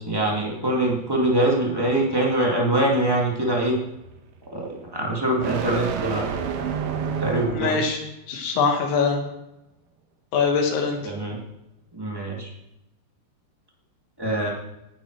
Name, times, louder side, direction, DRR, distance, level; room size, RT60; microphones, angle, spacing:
voice 1, 0.1-3.8 4.5-6.2 7.2-7.8 11.0-11.4 11.9-12.5 14.2-14.5, right 1 dB, 25° right, -3 dB, 0.5 m, -23 dB
sound 1, 0.9-7.9, right 6 dB, 70° right, 3.0 m, -32 dB
voice 2, 7.5-8.0 8.3-9.3 10.3-11.0, left 5 dB, 85° left, 2 dB, 4.3 m, -22 dB
17.0 x 10.0 x 4.7 m, 0.91 s
omnidirectional pair, 5.1 m